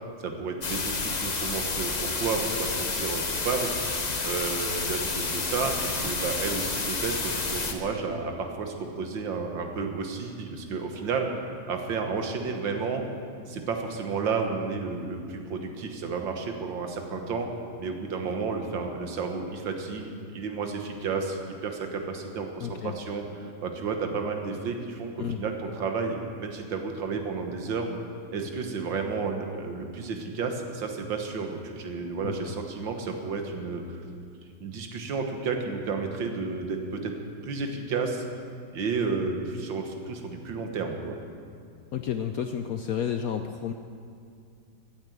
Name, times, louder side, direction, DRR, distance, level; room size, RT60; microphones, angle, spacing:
voice 1, 0.2-3.7 4.2-11.3 11.7-13.0 13.5-17.5 17.8-27.9 28.3-33.8 34.6-37.1 37.4-38.2 38.7-41.1, right 4 dB, 75° right, 4 dB, 2.1 m, -32 dB
sound 1, 0.6-7.7, left 3 dB, 35° left, 0.7 m, -30 dB
voice 2, 22.6-22.9 25.2-25.4 32.2-32.5 41.9-43.7, left 8 dB, 70° left, 7 dB, 0.8 m, -31 dB
15.0 x 8.9 x 8.0 m, 2.4 s
omnidirectional pair, 2.1 m